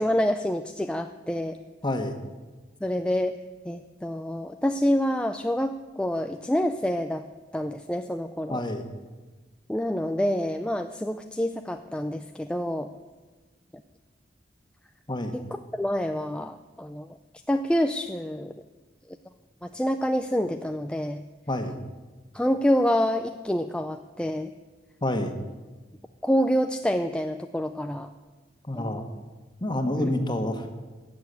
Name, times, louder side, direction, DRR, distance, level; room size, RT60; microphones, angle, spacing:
voice 1, 0.0-1.6 2.8-3.4 3.7-7.2 7.5-8.6 9.7-12.9 15.3-17.2 17.5-18.5 19.6-21.2 22.3-24.5 26.2-28.1 28.7-28.9 30.0-30.1, equal, 5° left, 6 dB, 0.4 m, -27 dB
voice 2, 1.8-2.2 8.5-8.9 15.1-15.3 21.5-21.8 25.0-25.4 28.6-29.1 29.6-30.8, left 1 dB, 25° left, 6 dB, 1.5 m, -28 dB
17.0 x 7.0 x 9.4 m, 1.3 s
head